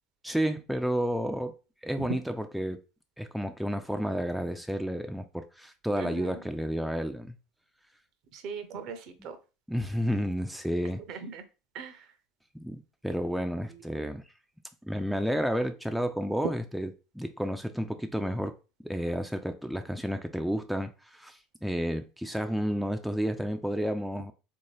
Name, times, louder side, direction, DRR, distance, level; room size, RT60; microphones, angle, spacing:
voice 1, 0.2-1.5 1.8-2.8 3.2-7.4 9.7-11.0 12.5-14.2 14.8-16.9 17.1-18.6 18.8-24.3, equal, ahead, 0.4 m, -31 dB
voice 2, 6.0-6.4 8.3-9.4 11.1-11.4 11.7-12.1, right 6 dB, 55° right, 0.7 m, -40 dB
3.7 x 2.6 x 3.2 m
hypercardioid pair, 75°, 0 cm